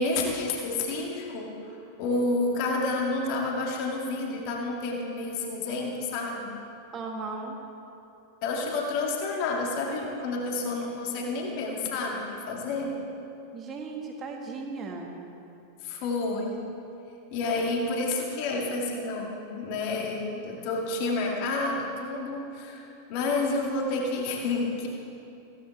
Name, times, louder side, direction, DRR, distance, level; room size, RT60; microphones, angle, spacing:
voice 1, 0.0-6.5 8.4-13.0 15.8-16.7 17.3-24.9, left 3 dB, 45° left, -1 dB, 2.3 m, -29 dB
voice 2, 6.9-7.6 13.5-15.1, right 4 dB, 25° right, 1 dB, 1.9 m, -36 dB
16.5 x 14.0 x 3.7 m, 2.8 s
figure-of-eight pair, 90°, 0 cm